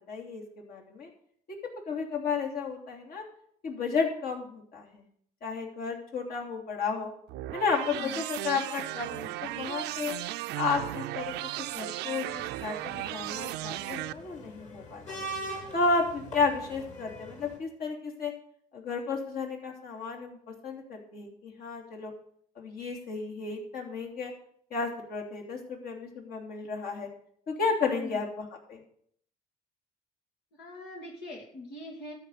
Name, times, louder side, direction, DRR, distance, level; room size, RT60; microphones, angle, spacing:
voice 1, 0.1-1.1 1.5-1.6 1.9-3.2 3.6-5.1 5.4-7.1 7.5-10.2 10.5-15.2 15.7-18.3 18.7-20.4 20.6-22.1 22.5-24.3 24.7-27.1 27.5-28.8, left 4 dB, 60° left, 0 dB, 3.2 m, -32 dB
sound 1, 7.3-14.1, right 16 dB, 85° right, 0.5 m, -36 dB
sound 2, 12.3-17.6, right 1 dB, 45° left, 5.4 m, -43 dB
voice 2, 30.5-32.1, left 1 dB, 85° left, -1 dB, 2.5 m, -42 dB
13.0 x 5.9 x 8.2 m, 0.64 s
cardioid pair, 110°, 17 cm